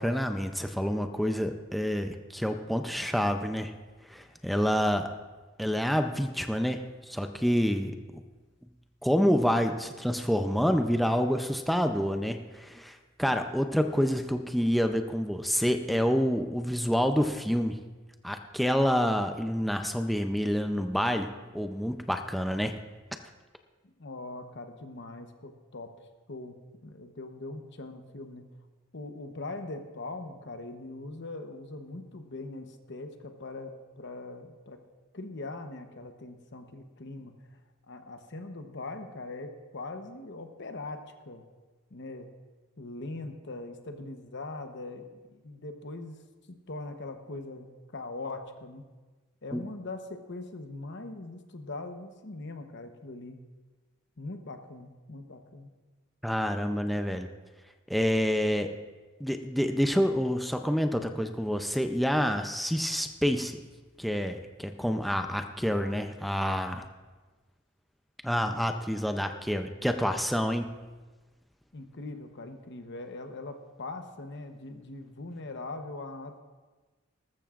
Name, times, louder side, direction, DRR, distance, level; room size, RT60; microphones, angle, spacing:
voice 1, 0.0-3.7 4.1-5.1 5.6-7.9 9.0-17.8 18.2-21.3 21.5-22.8 49.5-49.6 56.2-57.3 57.9-58.7 59.2-63.6 64.0-66.9 68.2-70.7, equal, ahead, 5 dB, 0.5 m, -28 dB
voice 2, 24.0-25.9 26.3-26.6 26.8-28.5 28.9-34.8 35.1-37.3 37.9-41.4 41.9-42.3 42.8-46.2 46.5-48.9 49.4-53.4 54.2-55.7 71.7-76.4, left 2 dB, 60° left, 6 dB, 1.0 m, -41 dB
19.5 x 14.0 x 2.5 m, 1.3 s
head